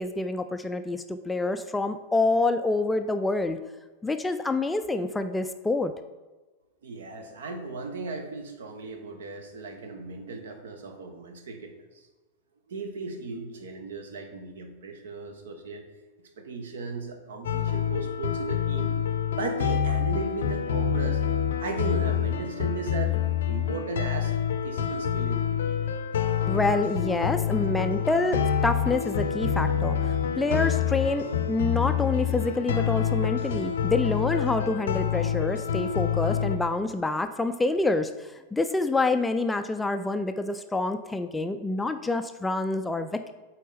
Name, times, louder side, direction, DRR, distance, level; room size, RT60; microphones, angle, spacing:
voice 1, 0.0-3.6 4.0-5.9 26.5-43.3, left 2 dB, 10° left, 9 dB, 0.3 m, -27 dB
voice 2, 6.8-11.8 12.7-15.9 16.4-19.0 19.4-21.2 21.6-23.2 23.5-24.4 24.6-25.8, right 3 dB, 60° right, 6 dB, 0.9 m, -36 dB
sound 1, 17.4-36.6, left 8 dB, 60° left, 0.5 m, -27 dB
8.3 x 4.2 x 3.5 m, 1.2 s
figure-of-eight pair, 90°, 0 cm